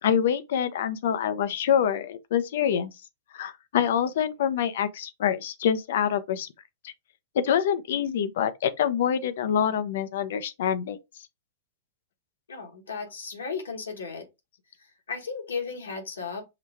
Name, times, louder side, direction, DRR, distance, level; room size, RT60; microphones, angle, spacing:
voice 1, 0.0-2.9 3.3-6.5 6.8-6.9 7.3-11.0, left 8 dB, 65° left, 0.6 m, -26 dB
voice 2, 12.5-14.3 15.1-16.4, left 5 dB, 85° left, 1.4 m, -35 dB
5.7 x 2.2 x 3.4 m
hypercardioid pair, 110°, 0 cm